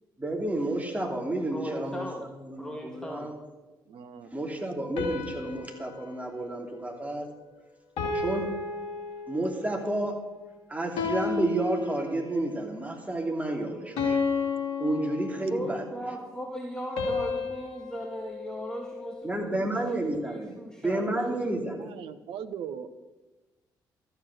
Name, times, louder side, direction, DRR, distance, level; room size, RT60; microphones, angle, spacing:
voice 1, 0.2-2.1 2.4-3.4 4.3-7.3 8.1-8.6 9.3-10.3 10.7-14.2 14.8-15.8 19.2-20.6 20.8-21.9, right 1 dB, 15° right, 2 dB, 2.8 m, -31 dB
voice 2, 1.5-2.3 2.6-3.3 15.5-21.5, right 1 dB, 5° left, 1 dB, 1.9 m, -38 dB
voice 3, 3.9-4.5 21.8-22.9, right 8 dB, 65° right, 10 dB, 0.8 m, -39 dB
sound 1, 5.0-7.5 8.0-9.7 11.0-12.5 14.0-15.8 17.0-19.3, left 4 dB, 70° left, 2.2 m, -33 dB
13.0 x 8.0 x 7.8 m, 1.1 s
hypercardioid pair, 40°, 10 cm